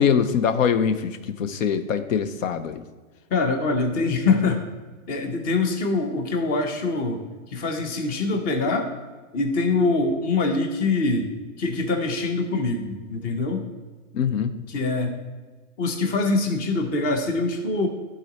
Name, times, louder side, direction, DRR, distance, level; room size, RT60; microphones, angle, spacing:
voice 1, 0.0-2.8 14.1-14.5, left 7 dB, 75° left, 10 dB, 0.7 m, -23 dB
voice 2, 3.3-4.6 5.1-7.2 7.5-8.9 9.3-11.3 11.6-13.7 14.7-15.1 15.8-17.9, left 3 dB, 20° left, 5 dB, 0.8 m, -24 dB
11.0 x 4.0 x 4.1 m, 1.3 s
hypercardioid pair, 145°, 39 cm